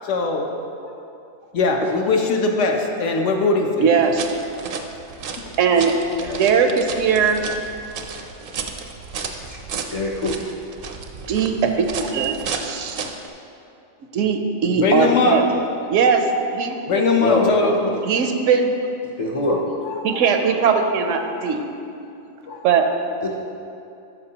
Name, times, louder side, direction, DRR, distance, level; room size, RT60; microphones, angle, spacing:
voice 1, 0.0-0.4 1.5-3.9 14.8-15.4 16.9-17.7 19.8-20.3 21.2-21.6 22.5-22.6, left 4 dB, 70° left, 2 dB, 1.0 m, -21 dB
voice 2, 3.8-4.3 5.6-5.9 6.4-7.5 11.3-13.0 14.1-15.5 15.9-16.8 18.0-18.7 20.0-21.6 22.6-22.8, right 6 dB, 80° right, 5 dB, 1.0 m, -19 dB
sound 1, 4.0-13.3, right 5 dB, 60° right, 0.6 m, -33 dB
voice 3, 9.9-10.4 15.4-15.5 17.2-17.9 19.2-19.6 23.2-23.3, left 2 dB, 50° left, -2 dB, 0.4 m, -24 dB
12.5 x 5.4 x 2.8 m, 2.7 s
omnidirectional pair, 1.3 m